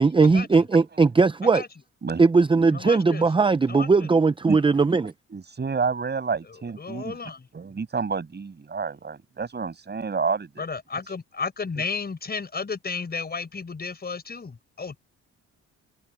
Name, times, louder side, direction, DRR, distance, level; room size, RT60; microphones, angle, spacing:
voice 1, 0.0-1.6 2.2-5.1, right 4 dB, 15° right, 0.7 m, -19 dB
voice 2, 2.7-3.3 3.7-4.1 6.8-7.5 10.6-15.0, left 4 dB, 30° left, 5.3 m, -33 dB
voice 3, 5.3-7.2 7.5-10.6, right 5 dB, 35° right, 7.5 m, -29 dB
open air
cardioid pair, 90°, 30 cm